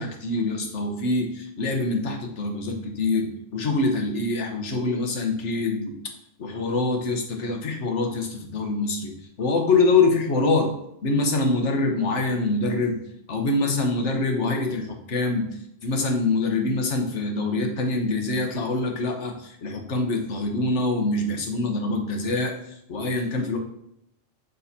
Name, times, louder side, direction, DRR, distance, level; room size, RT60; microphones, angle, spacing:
voice 1, 0.0-6.0 6.4-10.7 11.0-13.0 13.3-23.6, left 3 dB, 65° left, 3 dB, 1.3 m, -25 dB
6.7 x 5.6 x 2.7 m, 0.75 s
omnidirectional pair, 1.3 m